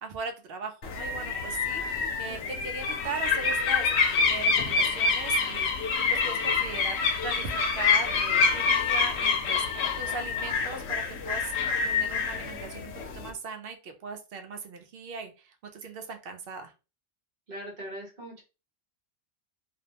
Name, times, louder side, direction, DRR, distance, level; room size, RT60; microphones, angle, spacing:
voice 1, 0.0-3.9 4.3-5.7 6.1-9.7 10.0-11.5 11.8-16.7, right 4 dB, 65° right, 6 dB, 0.7 m, -39 dB
sound 1, 0.8-13.3, left 5 dB, 85° left, 0.9 m, -27 dB
voice 2, 17.5-18.4, right 1 dB, 45° right, -1 dB, 1.1 m, -40 dB
2.5 x 2.0 x 2.7 m, 0.30 s
omnidirectional pair, 1.1 m